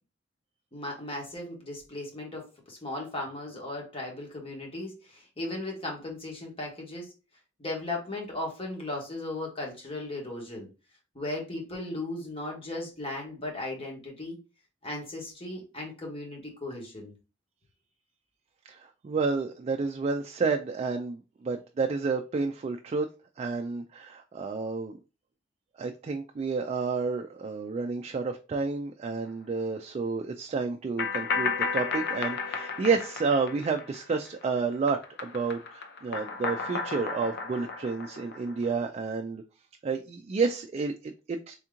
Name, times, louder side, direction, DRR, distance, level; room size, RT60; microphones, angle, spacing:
voice 1, 0.7-7.1 7.6-10.7 11.1-14.4 14.8-17.1, left 2 dB, 30° left, 0 dB, 1.3 m, -36 dB
voice 2, 18.7-23.1 23.4-25.0 25.8-39.4 39.8-41.5, right 4 dB, 35° right, 4 dB, 0.3 m, -30 dB
sound 1, 31.0-34.4 34.7-38.7, left 5 dB, 60° left, 0.6 m, -33 dB
3.5 x 2.9 x 3.6 m, 0.32 s
head